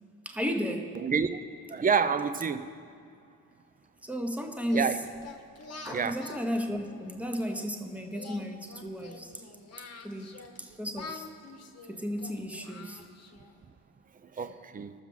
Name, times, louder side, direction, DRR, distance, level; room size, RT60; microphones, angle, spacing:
voice 1, 0.2-1.0 4.0-5.0 5.8-9.4 10.0-11.3 11.9-13.0, equal, 5° right, 1.1 m, -34 dB
voice 2, 1.0-1.3 1.7-2.6 4.7-5.0 5.9-6.2 14.1-14.9, right 6 dB, 20° right, 0.5 m, -28 dB
Singing, 4.6-7.7 8.1-10.6 10.9-13.5, left 4 dB, 35° left, 1.2 m, -46 dB
21.0 x 7.1 x 3.8 m
figure-of-eight pair, 40°, 45 cm